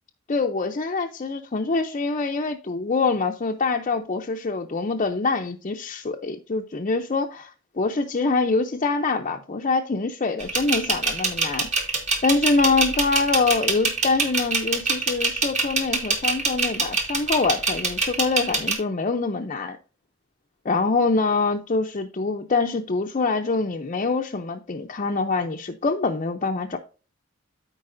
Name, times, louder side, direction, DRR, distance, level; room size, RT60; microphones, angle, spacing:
voice 1, 0.3-11.7 12.2-19.8 20.6-26.8, left 3 dB, 40° left, 0.6 m, -25 dB
sound 1, 10.4-18.7, right 4 dB, 35° right, 1.8 m, -23 dB
14.0 x 4.6 x 2.6 m
head